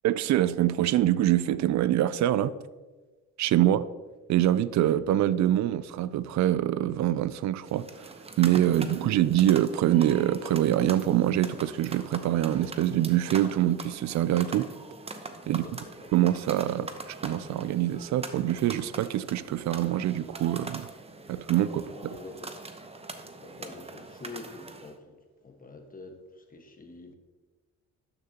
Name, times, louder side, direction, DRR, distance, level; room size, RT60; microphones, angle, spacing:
voice 1, 0.0-2.6 3.4-3.8 4.3-14.7 15.5-15.7 16.1-20.9 21.3-22.1, right 12 dB, 65° right, 0.4 m, -25 dB
sound 1, 7.6-25.0, right 3 dB, 20° right, 0.8 m, -43 dB
voice 2, 8.7-9.0 15.4-16.1 21.2-21.6 21.9-22.5 23.4-27.1, left 3 dB, 30° left, 1.4 m, -46 dB
12.0 x 6.7 x 2.9 m
cardioid pair, 90°, 30 cm